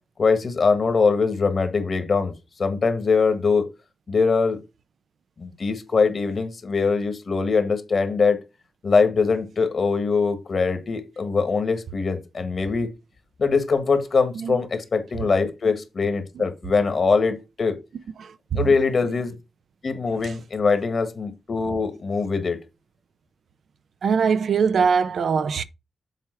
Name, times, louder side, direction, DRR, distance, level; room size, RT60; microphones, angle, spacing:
voice 1, 0.2-2.3 2.6-3.7 4.1-4.6 5.4-8.4 8.8-12.9 13.4-17.8 18.5-19.3 19.8-22.6, left 4 dB, 55° left, 1.6 m, -22 dB
voice 2, 18.2-18.6 20.2-20.3 24.0-25.6, right 6 dB, 80° right, 0.5 m, -22 dB
7.5 x 3.5 x 5.8 m
wide cardioid pair, 100°, 0 cm